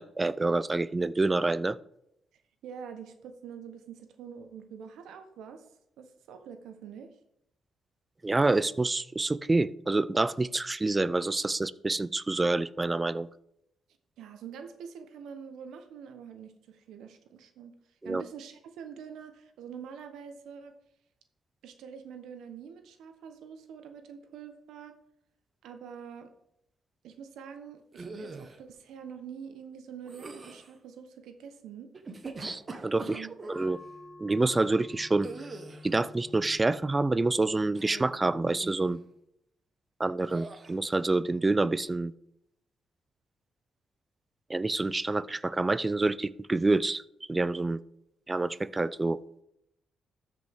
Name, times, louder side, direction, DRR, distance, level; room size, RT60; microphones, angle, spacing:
voice 1, 0.0-1.8 8.2-13.3 18.0-18.2 32.4-33.8 34.2-35.3 35.8-39.0 40.0-42.1 44.5-47.0 47.3-47.8 48.3-49.2, right 2 dB, 20° right, 18 dB, 0.4 m, -27 dB
voice 2, 2.6-5.6 6.0-7.1 14.2-17.7 18.0-20.7 21.6-25.0 25.6-26.3 27.0-31.9 33.0-33.3, right 7 dB, 85° right, 7 dB, 0.9 m, -45 dB
sound 1, 27.9-28.6 30.1-30.7 31.9-33.7 35.2-35.9 37.7-38.2 38.5-38.9 40.3-40.7, right 3 dB, 35° right, 1.1 m, -42 dB
sound 2, 33.5-38.7, left 2 dB, 20° left, 0.7 m, -50 dB
13.0 x 5.2 x 3.5 m, 0.78 s
cardioid pair, 85°, 0 cm